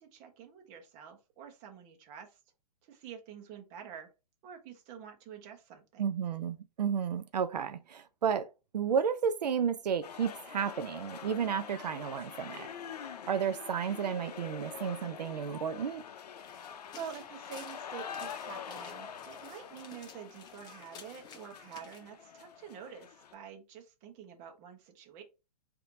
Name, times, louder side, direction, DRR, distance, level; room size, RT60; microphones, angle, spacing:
voice 1, 0.0-2.4 2.8-4.1 4.4-6.1 17.0-25.2, right 8 dB, 35° right, 1.0 m, -47 dB
voice 2, 6.0-12.7 13.3-16.0, right 7 dB, 85° right, 0.4 m, -32 dB
sound 1, 10.0-23.3, left 8 dB, 75° left, 0.6 m, -45 dB
sound 2, 16.4-22.0, left 6 dB, 20° left, 0.8 m, -54 dB
4.3 x 2.7 x 2.6 m
hypercardioid pair, 125°, 21 cm